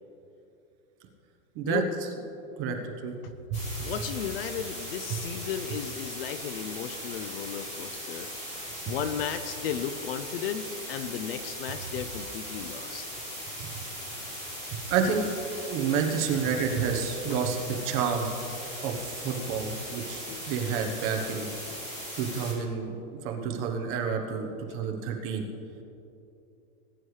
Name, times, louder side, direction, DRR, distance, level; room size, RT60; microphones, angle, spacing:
voice 1, 2.6-3.2 3.5-3.7 5.1-5.2 8.9-9.0 13.6-13.7 14.9-15.3 15.7-17.6 17.8-18.3 18.8-21.5 22.2-25.4, right 6 dB, 30° right, 3 dB, 1.1 m, -29 dB
sound 1, 3.5-22.5, equal, 15° left, 3.2 m, -39 dB
voice 2, 3.8-13.0 15.6-15.7 19.8-19.9 20.3-20.4 21.7-21.8, left 8 dB, 45° left, 10 dB, 0.5 m, -35 dB
20.0 x 9.8 x 3.2 m, 2.9 s
supercardioid pair, 160°, 44 cm